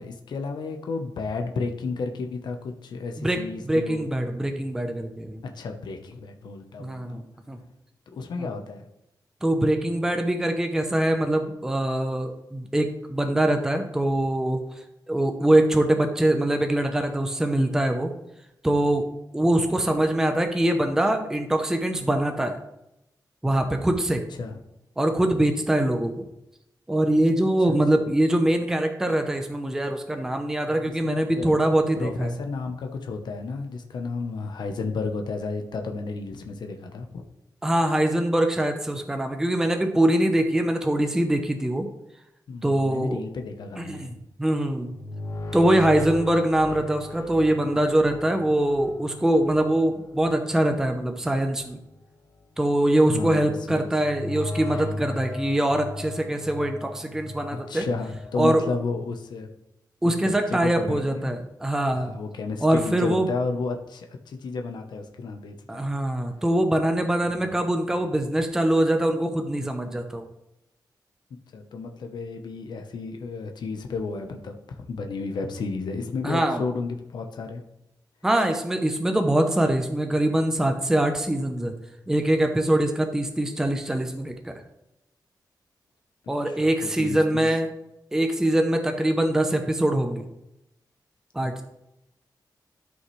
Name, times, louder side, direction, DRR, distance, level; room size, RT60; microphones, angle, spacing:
voice 1, 0.0-4.0 5.4-7.2 8.1-8.8 24.4-24.6 27.7-28.0 30.7-31.6 32.0-37.2 42.5-44.1 53.1-53.9 57.7-59.5 60.0-61.3 61.9-65.9 67.3-67.4 71.5-77.6 86.5-86.7 87.0-87.4 91.4-91.6, left 4 dB, 80° left, 4 dB, 0.8 m, -32 dB
voice 2, 3.2-5.4 6.8-7.2 7.5-7.6 8.4-8.5 9.4-18.1 18.6-22.6 23.4-24.2 25.0-26.3 26.9-32.3 37.6-41.9 42.6-43.2 43.8-44.9 45.5-51.8 52.6-57.9 58.3-58.6 60.0-62.2 62.6-63.3 65.7-70.3 76.2-76.6 78.2-81.7 82.1-84.5 86.3-87.7 88.1-90.3 91.3-91.6, right 1 dB, 5° right, 5 dB, 0.6 m, -23 dB
sound 1, 44.8-52.0 53.9-58.4, left 2 dB, 55° left, 1.3 m, -37 dB
13.0 x 5.5 x 3.2 m, 0.86 s
wide cardioid pair, 175°, 7 cm